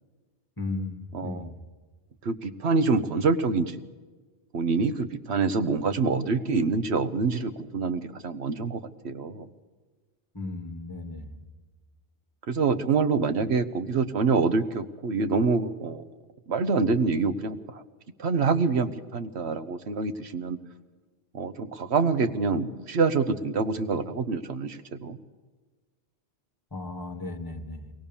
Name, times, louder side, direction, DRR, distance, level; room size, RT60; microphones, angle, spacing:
voice 1, 0.6-1.5 10.3-11.3 26.7-27.9, left 2 dB, 20° left, 5 dB, 1.7 m, -35 dB
voice 2, 1.1-1.5 2.2-3.8 4.5-8.8 9.0-9.5 12.5-16.0 16.5-17.8 18.2-20.6 21.3-25.2, right 4 dB, 70° right, 10 dB, 1.3 m, -26 dB
22.0 x 18.0 x 7.1 m, 1.4 s
omnidirectional pair, 1.2 m